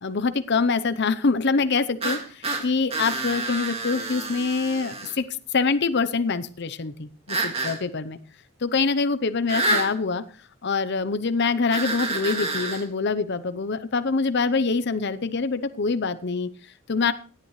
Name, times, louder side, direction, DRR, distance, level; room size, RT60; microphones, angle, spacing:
voice 1, 0.0-8.2 8.6-10.2 10.6-17.1, left 4 dB, 50° left, 12 dB, 0.7 m, -25 dB
sound 1, 2.0-5.2 7.3-7.8 9.5-9.9 11.7-12.8, right 2 dB, 30° right, 2.1 m, -28 dB
17.5 x 11.0 x 3.2 m, 0.40 s
head